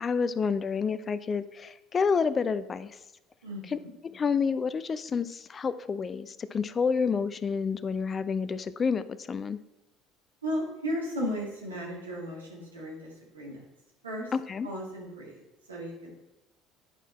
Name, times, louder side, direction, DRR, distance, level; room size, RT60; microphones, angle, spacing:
voice 1, 0.0-2.9 3.7-3.8 4.1-9.6 14.3-14.7, left 5 dB, 35° left, 14 dB, 0.5 m, -29 dB
voice 2, 3.4-3.9 10.4-13.6 14.0-14.3 14.6-15.4 15.7-16.1, equal, 85° right, -3 dB, 2.0 m, -35 dB
9.9 x 4.6 x 4.3 m, 0.97 s
hypercardioid pair, 65°, 0 cm